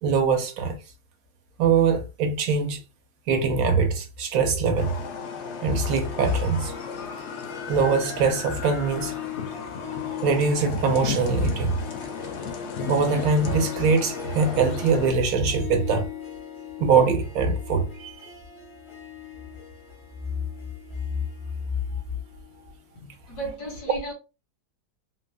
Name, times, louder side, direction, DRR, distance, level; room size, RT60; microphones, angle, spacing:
voice 1, 0.0-0.8 1.6-2.8 3.3-4.9 5.6-6.7 7.7-9.1 10.2-11.8 12.9-16.1 16.8-18.1 21.9-22.0, right 4 dB, 70° right, 1.0 m, -22 dB
sound 1, 4.8-15.1, left 5 dB, 65° left, 0.7 m, -35 dB
Harp, 6.0-22.7, left 9 dB, 30° left, 0.5 m, -40 dB
voice 2, 23.0-24.1, right 2 dB, 85° left, 1.9 m, -35 dB
3.7 x 2.0 x 2.4 m
omnidirectional pair, 1.7 m